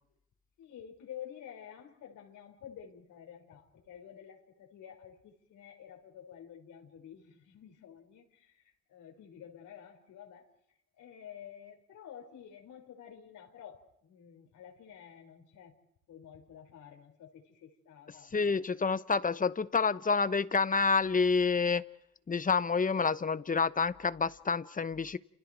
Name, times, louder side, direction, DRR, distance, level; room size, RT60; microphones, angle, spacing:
voice 1, 0.6-10.5 10.9-15.8 16.1-18.4, left 9 dB, 80° left, 5.4 m, -50 dB
voice 2, 18.3-21.8 22.3-25.2, left 4 dB, 25° left, 1.0 m, -28 dB
29.5 x 28.0 x 4.7 m
cardioid pair, 90°, 30 cm